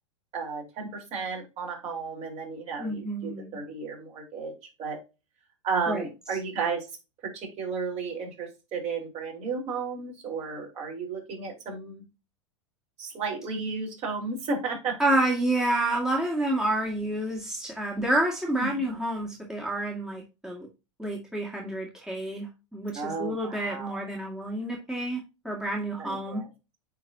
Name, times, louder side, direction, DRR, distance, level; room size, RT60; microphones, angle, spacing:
voice 1, 0.3-4.5 4.8-5.0 5.6-6.9 7.2-12.0 13.0-15.0 18.6-18.7 22.9-24.0 26.0-26.5, right 4 dB, 40° right, -1 dB, 4.1 m, -33 dB
voice 2, 2.8-3.6 5.9-6.1 15.0-20.7 21.0-26.4, right 1 dB, 5° right, -2 dB, 2.0 m, -29 dB
9.3 x 4.1 x 2.7 m, 0.27 s
hypercardioid pair, 100°, 17 cm